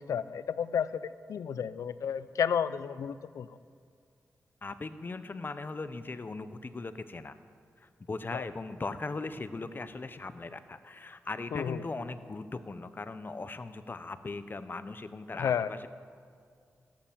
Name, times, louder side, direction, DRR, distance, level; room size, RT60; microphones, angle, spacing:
voice 1, 0.0-3.6 8.3-8.4 11.5-11.8 15.3-15.7, left 8 dB, 90° left, 15 dB, 0.5 m, -32 dB
voice 2, 4.6-7.4 7.8-15.9, left 3 dB, 40° left, 12 dB, 0.9 m, -39 dB
14.5 x 11.5 x 7.5 m, 2.3 s
cardioid pair, 65°, 5 cm